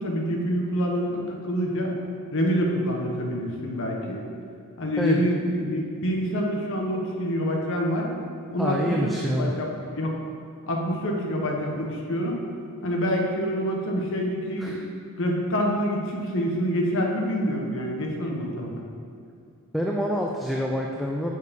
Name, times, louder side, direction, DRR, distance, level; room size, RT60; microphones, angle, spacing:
voice 1, 0.0-1.9 2.3-4.2 4.8-8.2 8.5-10.2 10.6-12.4 12.8-14.8 15.2-18.8, equal, 65° left, 0 dB, 1.3 m, -26 dB
voice 2, 8.6-9.6 14.6-14.8 19.7-21.3, equal, ahead, -1 dB, 0.5 m, -26 dB
7.1 x 6.3 x 5.4 m, 2.4 s
head